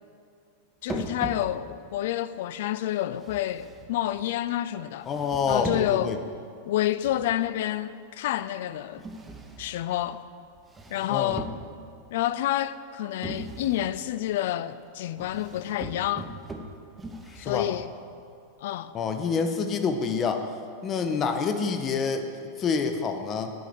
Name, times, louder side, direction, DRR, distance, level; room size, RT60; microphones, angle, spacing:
voice 1, 0.8-5.1 5.5-6.1 6.6-9.1 9.6-10.2 10.9-11.5 12.1-16.3 17.4-17.9 18.6-18.9, left 13 dB, 55° left, 0.3 m, -29 dB
sound 1, 0.9-1.9 3.1-4.3 5.0-6.1 7.1-7.5 9.0-9.9 10.6-12.0 13.2-14.0 15.2-18.0, right 2 dB, 15° right, 0.8 m, -40 dB
voice 2, 5.1-6.2 11.1-11.4 17.3-17.7 18.9-20.5 20.8-23.5, left 5 dB, 30° left, 0.7 m, -27 dB
9.6 x 4.8 x 6.9 m
figure-of-eight pair, 90°, 0 cm